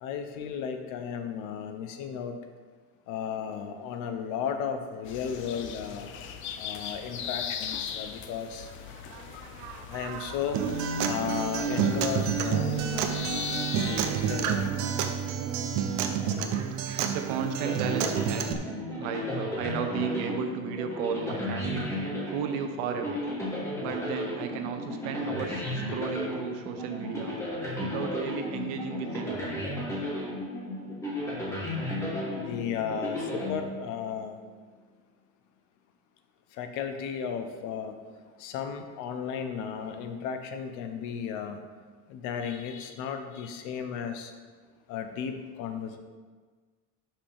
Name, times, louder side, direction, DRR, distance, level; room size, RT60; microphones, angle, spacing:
voice 1, 0.0-2.4 3.1-6.1 6.6-8.7 9.9-10.6 11.0-13.4 13.7-14.6 16.2-16.7 32.3-34.4 36.6-37.9 38.4-41.6 42.1-44.3 44.9-46.0, left 7 dB, 55° left, 7 dB, 0.9 m, -34 dB
sound 1, 5.0-14.7, left 8 dB, 35° left, 0.5 m, -39 dB
voice 2, 8.8-10.7 13.8-14.2 14.6-15.3 16.5-18.4 19.0-21.9 22.3-23.2 23.8-27.4 27.8-29.6, right 7 dB, 85° right, 6 dB, 1.1 m, -35 dB
Acoustic guitar, 10.5-18.5, right 7 dB, 55° right, 0.8 m, -29 dB
sound 2, 17.6-34.2, left 1 dB, 10° left, 1.6 m, -34 dB
11.5 x 5.9 x 3.6 m, 1.5 s
cardioid pair, 180°, 35 cm